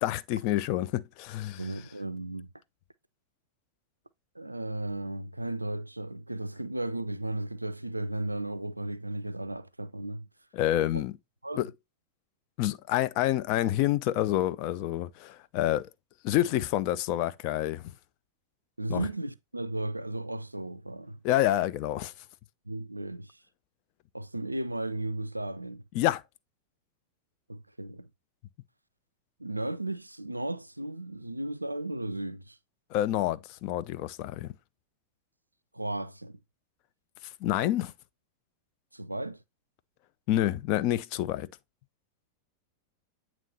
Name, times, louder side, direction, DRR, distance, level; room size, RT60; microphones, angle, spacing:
voice 1, 0.0-1.7 10.5-11.1 11.5-11.7 12.6-15.9 16.2-17.9 18.9-19.1 21.2-22.1 25.9-26.2 32.9-34.5 37.4-37.9 40.3-41.5, left 13 dB, 45° left, 0.5 m, -28 dB
voice 2, 1.6-2.5 4.4-10.3 11.4-11.7 18.8-21.2 22.7-23.4 24.1-25.8 27.5-28.1 29.4-32.6 35.7-36.4 38.9-39.4, right 1 dB, 85° right, 0.3 m, -35 dB
9.0 x 3.0 x 4.1 m
figure-of-eight pair, 90°, 0 cm